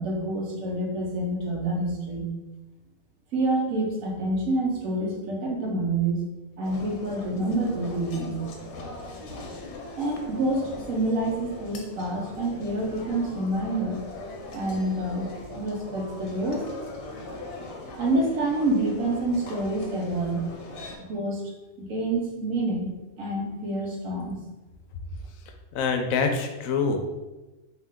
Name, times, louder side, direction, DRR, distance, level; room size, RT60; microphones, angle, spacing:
voice 1, 0.0-2.3 3.3-6.2 6.6-8.4 10.0-14.0 14.5-15.3 15.6-16.7 18.0-20.4 21.0-21.4 21.8-22.9 23.2-24.4, right 2 dB, 85° right, -1 dB, 1.2 m, -27 dB
sound 1, 6.6-21.0, left 2 dB, 65° left, 0.9 m, -40 dB
voice 2, 25.7-27.0, left 5 dB, 90° left, 5 dB, 1.0 m, -25 dB
3.5 x 2.7 x 3.6 m, 1.1 s
omnidirectional pair, 1.4 m